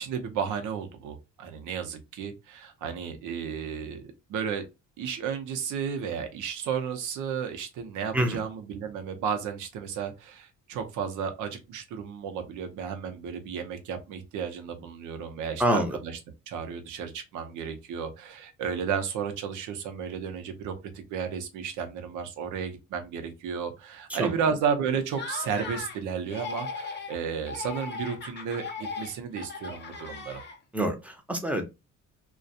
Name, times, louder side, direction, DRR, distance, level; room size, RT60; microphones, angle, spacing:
voice 1, 0.0-4.6 5.0-16.2 16.5-30.4, right 7 dB, 85° right, 0.7 m, -33 dB
voice 2, 15.6-16.0 24.1-24.3 30.7-31.6, right 1 dB, 5° right, 0.6 m, -26 dB
Laughter, 25.1-26.0 26.3-27.2 27.5-30.8, left 4 dB, 35° left, 0.6 m, -38 dB
2.4 x 2.2 x 2.6 m
cardioid pair, 90°, 30 cm